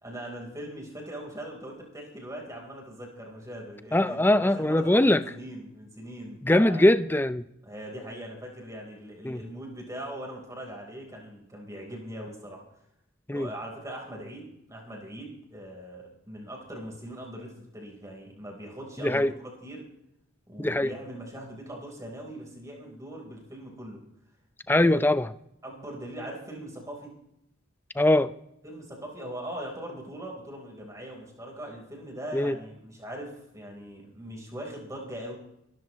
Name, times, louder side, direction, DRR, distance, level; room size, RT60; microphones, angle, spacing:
voice 1, 0.0-6.9 7.6-12.6 13.3-19.9 20.5-24.0 24.7-25.0 25.6-27.1 28.6-35.4, right 1 dB, 15° right, -1 dB, 4.0 m, -41 dB
voice 2, 3.9-5.2 6.4-7.4 9.2-9.4 13.3-13.5 19.0-19.3 20.6-20.9 24.7-25.3 28.0-28.3 32.3-32.6, left 1 dB, 10° left, 13 dB, 0.5 m, -22 dB
25.0 x 13.0 x 3.1 m, 0.78 s
head